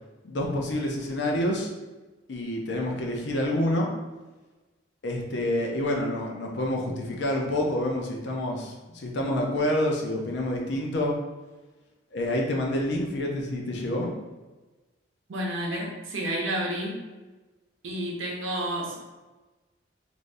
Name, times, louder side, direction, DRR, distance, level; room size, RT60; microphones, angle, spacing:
voice 1, 0.2-1.7 2.3-3.9 5.0-11.1 12.1-14.1, left 1 dB, 65° left, 0 dB, 0.6 m, -28 dB
voice 2, 15.3-17.0 17.8-19.0, right 1 dB, 85° right, -1 dB, 0.7 m, -30 dB
3.3 x 2.6 x 2.6 m, 1.2 s
head